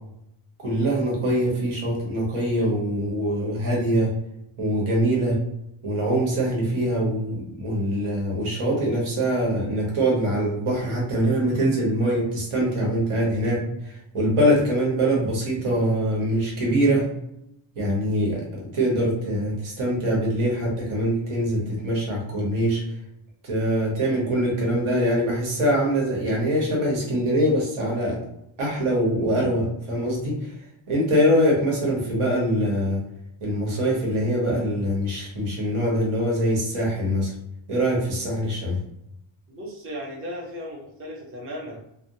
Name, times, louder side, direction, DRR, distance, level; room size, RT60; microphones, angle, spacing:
voice 1, 0.6-4.1 4.6-5.4 5.8-17.1 17.7-22.8 23.4-28.2 28.6-30.5 30.9-33.0 33.4-37.3 37.7-38.8, equal, 85° right, -3 dB, 1.3 m, -23 dB
voice 2, 39.5-41.8, equal, 30° right, -2 dB, 0.6 m, -36 dB
3.4 x 2.1 x 2.6 m, 0.80 s
wide cardioid pair, 175°, 49 cm